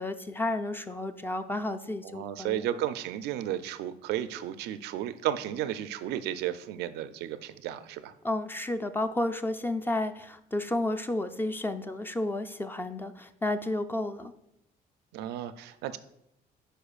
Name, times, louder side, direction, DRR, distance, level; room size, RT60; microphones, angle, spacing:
voice 1, 0.0-2.7 8.2-14.3, left 1 dB, 10° left, 9 dB, 0.4 m, -32 dB
voice 2, 2.0-8.1 15.1-16.0, right 11 dB, 80° right, 12 dB, 0.4 m, -33 dB
10.0 x 4.4 x 2.4 m, 0.81 s
cardioid pair, 110°, 17 cm